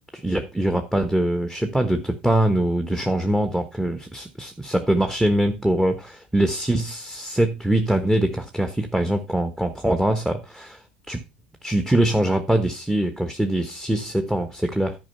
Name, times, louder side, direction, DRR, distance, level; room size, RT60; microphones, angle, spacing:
voice 1, 0.1-10.8 11.1-11.2 11.6-15.0, right 1 dB, 5° right, 8 dB, 1.2 m, -23 dB
10.5 x 5.3 x 5.7 m, 0.28 s
figure-of-eight pair, 70°, 4 cm